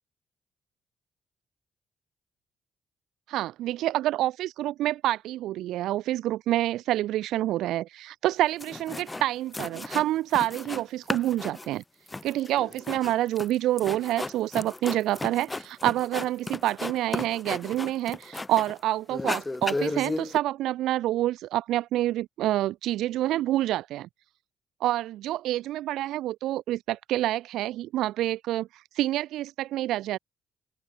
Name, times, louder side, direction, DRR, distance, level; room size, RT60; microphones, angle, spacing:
voice 1, 3.3-11.8 12.2-24.1 24.8-30.2, right 14 dB, 85° right, 1.9 m, -27 dB
sound 1, 8.3-8.4 8.6-9.3 9.5-10.8 11.1-18.8 19.1-20.4, left 2 dB, 20° left, 2.0 m, -34 dB
open air
cardioid pair, 90°, 0 cm